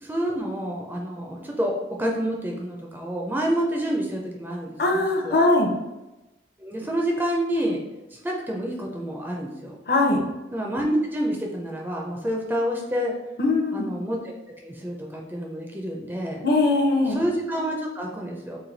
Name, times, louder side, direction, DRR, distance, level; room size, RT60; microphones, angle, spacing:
voice 1, 0.0-5.4 6.6-7.8 8.1-9.7 10.5-13.1 13.7-14.3 14.6-16.4 17.0-18.6, equal, 10° right, -1 dB, 0.4 m, -28 dB
voice 2, 4.8-5.7 9.9-10.2 13.4-13.8 16.4-17.2, left 2 dB, 55° left, 1 dB, 0.6 m, -20 dB
3.2 x 2.6 x 3.9 m, 1.0 s
head